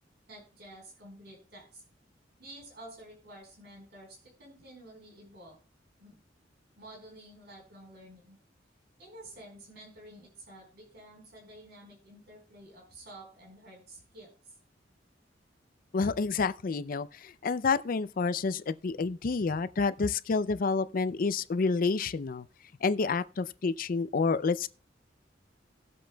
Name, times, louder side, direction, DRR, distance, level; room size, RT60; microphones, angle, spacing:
voice 1, 0.3-1.8 2.4-5.6 6.0-6.1 6.7-8.4 9.0-14.5, right 1 dB, 65° right, 4.4 m, -50 dB
voice 2, 15.9-22.5 22.8-24.7, left 4 dB, 50° left, 0.4 m, -29 dB
19.5 x 7.6 x 2.3 m
head